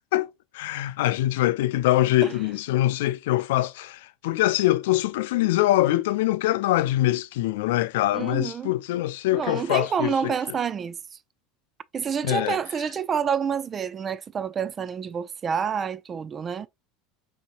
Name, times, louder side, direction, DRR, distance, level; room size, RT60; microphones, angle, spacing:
voice 1, 0.1-10.3 12.2-12.6, left 15 dB, 70° left, 0.3 m, -24 dB
voice 2, 8.1-8.7 9.3-11.0 11.9-16.7, right 7 dB, 30° right, 0.3 m, -28 dB
5.4 x 2.8 x 2.5 m
hypercardioid pair, 75°, 0 cm